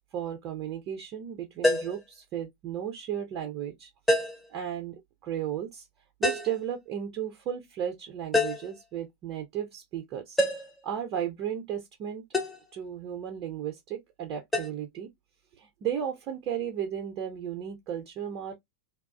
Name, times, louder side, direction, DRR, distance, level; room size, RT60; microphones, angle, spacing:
voice 1, 0.0-3.9 4.5-5.9 6.2-10.4 10.8-12.2 12.7-15.1 15.6-18.6, right 9 dB, 35° right, 0.5 m, -34 dB
sound 1, 1.6-2.0 4.1-4.5 6.2-6.6 8.3-8.7 10.4-10.8 12.3-12.6 14.5-14.7, left 1 dB, 10° left, 0.8 m, -26 dB
2.3 x 2.3 x 2.3 m
figure-of-eight pair, 90°, 0 cm